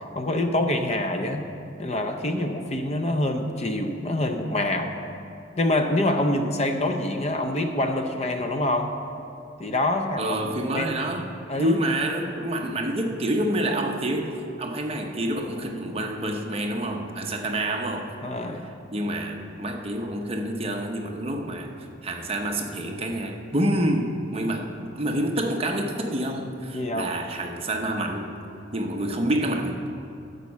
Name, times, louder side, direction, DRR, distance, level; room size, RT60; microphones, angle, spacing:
voice 1, 0.2-1.5 1.8-4.9 5.6-8.9 9.6-10.9 11.5-11.8 18.2-18.7 26.7-27.1, left 1 dB, 35° left, 5 dB, 0.6 m, -26 dB
voice 2, 10.2-11.3 11.6-18.1 18.9-21.7 22.0-28.3 28.7-29.8, right 1 dB, 30° right, 2 dB, 0.9 m, -27 dB
12.5 x 5.3 x 7.3 m, 2.6 s
head